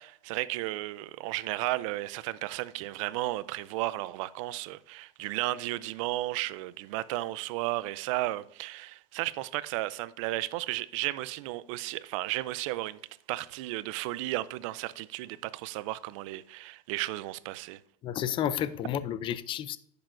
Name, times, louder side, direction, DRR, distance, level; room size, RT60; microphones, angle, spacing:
voice 1, 0.0-13.0 13.3-17.8, right 17 dB, 70° right, 0.5 m, -34 dB
voice 2, 18.0-19.8, left 10 dB, 30° left, 0.4 m, -31 dB
10.0 x 6.7 x 2.6 m
supercardioid pair, 145°, 17 cm